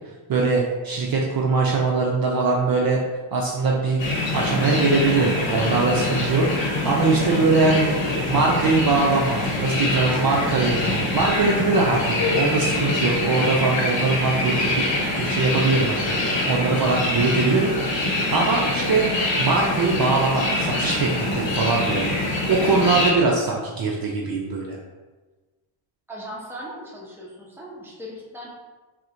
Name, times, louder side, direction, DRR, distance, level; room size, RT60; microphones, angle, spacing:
voice 1, 0.3-3.0 3.3-4.0 4.3-7.9 8.3-14.9 15.2-19.1 19.4-22.1 22.5-24.8, right 3 dB, 50° right, -2 dB, 0.5 m, -22 dB
sound 1, 4.0-23.1, left 2 dB, 65° left, 0.9 m, -24 dB
voice 2, 26.1-28.5, equal, 5° right, -4 dB, 0.7 m, -38 dB
4.2 x 2.1 x 2.5 m, 1.3 s
cardioid pair, 75°, 49 cm